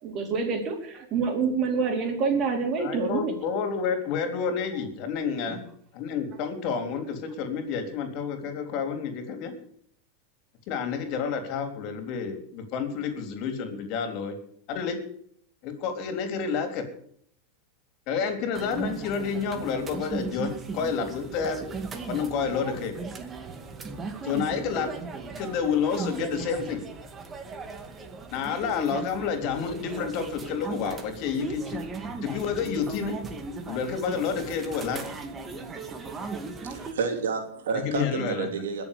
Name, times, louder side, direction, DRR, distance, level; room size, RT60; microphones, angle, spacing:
voice 1, 0.0-3.3 5.5-5.6, right 5 dB, 40° right, 3 dB, 4.4 m, -27 dB
voice 2, 2.8-5.6 5.9-9.5 10.7-14.4 14.7-15.0 15.6-16.8 18.1-21.6 22.1-22.9 24.2-24.9 25.4-26.8 28.3-31.8 32.2-33.2 33.7-35.2 37.7-38.5, left 6 dB, 55° left, 7 dB, 3.6 m, -29 dB
sound 1, 18.5-36.9, right 4 dB, 25° right, 2.2 m, -37 dB
voice 3, 36.6-38.8, right 5 dB, 80° right, 5 dB, 3.2 m, -30 dB
21.5 x 7.2 x 6.8 m, 0.63 s
hypercardioid pair, 110°, 0 cm